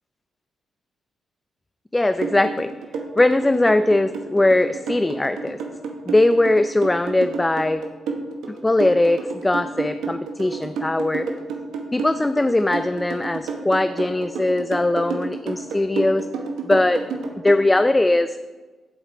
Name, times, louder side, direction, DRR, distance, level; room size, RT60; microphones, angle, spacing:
voice 1, 1.9-2.7 3.2-5.6 6.1-7.8 8.5-11.3 11.9-16.3 16.6-17.0 17.4-18.4, left 2 dB, 20° left, 10 dB, 0.3 m, -20 dB
sound 1, 2.2-17.6, right 5 dB, 80° right, 0.9 m, -30 dB
13.0 x 4.8 x 3.0 m, 1.3 s
hypercardioid pair, 45°, 0 cm